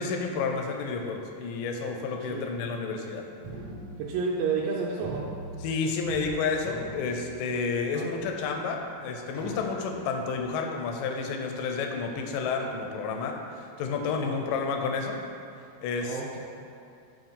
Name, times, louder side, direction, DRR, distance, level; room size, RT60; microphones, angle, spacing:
voice 1, 0.0-3.2 5.6-15.2 15.8-16.2, left 4 dB, 80° left, 3 dB, 2.1 m, -30 dB
sound 1, 3.4-4.7 5.0-6.3 6.6-7.9 8.5-8.6 9.3-10.2, right 2 dB, 50° right, 2.5 m, -42 dB
voice 2, 4.0-5.3 7.9-8.2 14.2-14.5 16.0-16.4, right 5 dB, 85° right, -3 dB, 2.3 m, -31 dB
7.1 x 3.0 x 5.4 m, 2.4 s
omnidirectional pair, 4.0 m